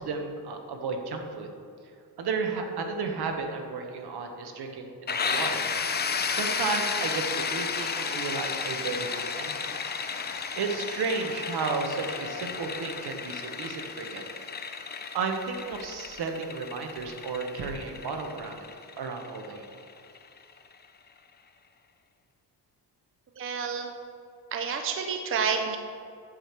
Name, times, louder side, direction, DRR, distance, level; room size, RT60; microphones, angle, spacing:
voice 1, 0.0-1.5 2.2-5.6 6.3-9.7 10.5-14.2 15.1-18.6 19.0-19.6, right 4 dB, 70° right, 4 dB, 1.1 m, -33 dB
sound 1, 5.1-20.7, left 5 dB, 25° left, 0.4 m, -33 dB
voice 2, 23.4-23.9 24.5-25.8, right 6 dB, 35° right, 4 dB, 0.5 m, -29 dB
8.7 x 6.6 x 4.5 m, 2.4 s
wide cardioid pair, 165°, 40 cm